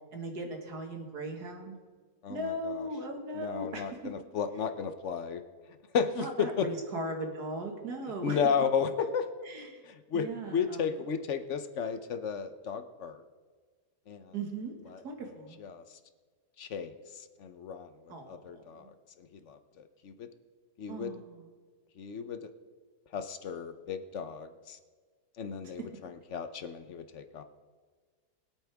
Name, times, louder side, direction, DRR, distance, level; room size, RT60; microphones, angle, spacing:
voice 1, 0.1-1.8 2.3-4.1 6.2-8.4 9.5-9.8 10.1-10.8 14.3-14.8 15.0-15.6 18.1-18.3 18.8-18.9 20.9-21.5, right 2 dB, 75° right, 2 dB, 2.3 m, -38 dB
voice 2, 2.2-2.9 3.3-5.4 5.9-6.7 8.2-9.5 9.8-13.2 14.1-14.3 14.9-15.0 15.6-16.0 16.6-20.3 20.8-21.1 22.0-22.5 23.1-24.8 25.4-27.4, left 6 dB, 55° left, 10 dB, 1.0 m, -34 dB
23.0 x 8.5 x 3.5 m, 1.5 s
omnidirectional pair, 1.7 m